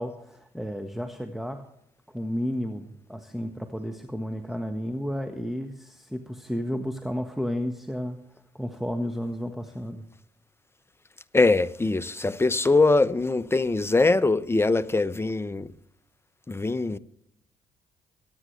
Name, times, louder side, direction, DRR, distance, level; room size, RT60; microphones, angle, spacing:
voice 1, 0.0-1.6 2.1-10.1, equal, ahead, 1.5 m, -32 dB
voice 2, 11.3-15.7 16.5-17.0, left 3 dB, 20° left, 0.9 m, -22 dB
24.0 x 9.7 x 3.3 m
hypercardioid pair, 50°, 14 cm